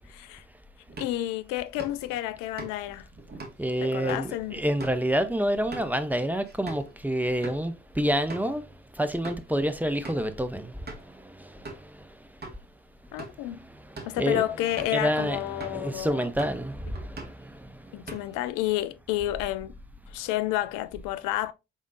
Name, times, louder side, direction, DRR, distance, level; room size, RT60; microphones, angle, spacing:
sound 1, 0.9-6.9 7.3-7.6 8.0-8.1 8.3-8.5 9.0-9.5 10.0-10.3 10.9-11.2 11.7-11.9 12.4-12.6 13.0-13.5 13.8-14.2 14.8-15.1 15.6-15.9 16.2-16.6 17.0-17.5 17.8-18.5, right 3 dB, 25° right, 1.8 m, -43 dB
voice 1, 1.0-3.1 3.8-4.6 13.1-13.6 14.1-16.3 17.9-19.7 20.1-21.5, left 14 dB, 65° left, 0.5 m, -30 dB
voice 2, 3.6-8.6 8.9-12.0 13.4-14.4 14.9-17.8, equal, 5° right, 0.6 m, -29 dB
4.9 x 3.6 x 2.5 m
hypercardioid pair, 45°, 35 cm